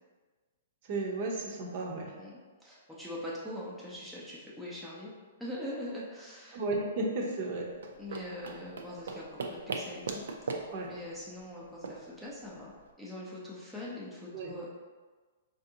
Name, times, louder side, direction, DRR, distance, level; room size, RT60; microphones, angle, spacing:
voice 1, 0.8-2.1 6.5-7.7 10.7-10.9 14.3-14.5, right 2 dB, 45° right, 0 dB, 0.6 m, -34 dB
voice 2, 2.2-5.1 5.4-6.6 8.0-10.2 10.5-12.7 13.0-14.7, left 1 dB, ahead, -7 dB, 0.5 m, -42 dB
sound 1, 7.7-12.9, right 4 dB, 85° right, 0.4 m, -40 dB
4.4 x 2.5 x 2.7 m, 1.4 s
hypercardioid pair, 160°, 0 cm